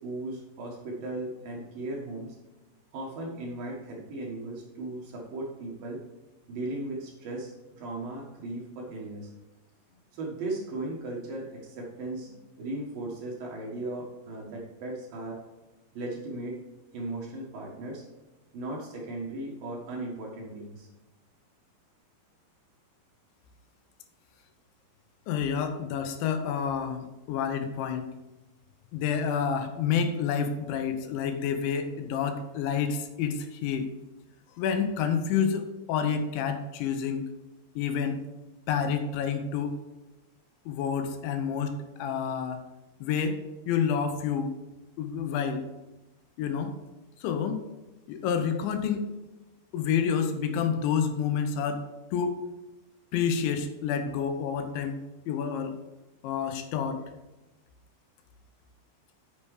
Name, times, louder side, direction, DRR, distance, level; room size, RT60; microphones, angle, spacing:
voice 1, 0.0-2.4 2.9-6.0 6.5-9.3 9.9-15.4 15.9-16.6 16.9-18.0 18.5-20.9, right 2 dB, 60° right, -2 dB, 2.9 m, -37 dB
voice 2, 25.3-28.1 28.9-33.9 34.6-37.3 37.8-38.2 38.7-39.7 40.7-42.6 43.0-43.4 43.7-44.5 45.0-45.6 46.4-46.8 47.2-47.6 48.1-49.0 49.7-51.8 52.1-52.4 53.1-55.8 56.2-57.0, left 7 dB, 80° left, 7 dB, 3.2 m, -29 dB
8.6 x 6.8 x 4.9 m, 1.1 s
omnidirectional pair, 5.3 m